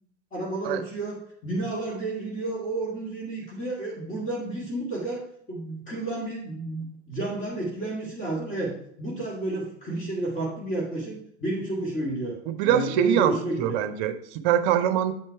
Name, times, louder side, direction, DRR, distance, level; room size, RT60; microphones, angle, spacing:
voice 1, 0.3-5.2 5.5-12.4 12.6-13.8, right 2 dB, 20° left, -4 dB, 1.9 m, -31 dB
voice 2, 12.5-15.1, right 10 dB, 45° right, 11 dB, 0.8 m, -24 dB
7.8 x 4.4 x 4.6 m, 0.70 s
hypercardioid pair, 100°, 35 cm